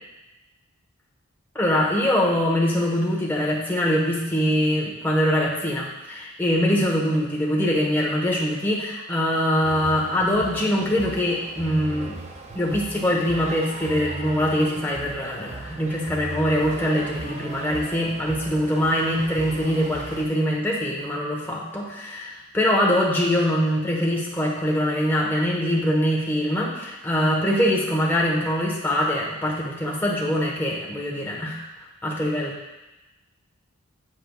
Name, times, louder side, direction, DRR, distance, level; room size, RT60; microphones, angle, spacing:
voice 1, 1.5-12.2 12.5-31.6 32.0-32.6, equal, 10° left, -4 dB, 1.1 m, -23 dB
sound 1, 9.6-20.3, right 2 dB, 30° right, 0.5 m, -37 dB
7.6 x 7.5 x 2.3 m, 1.0 s
head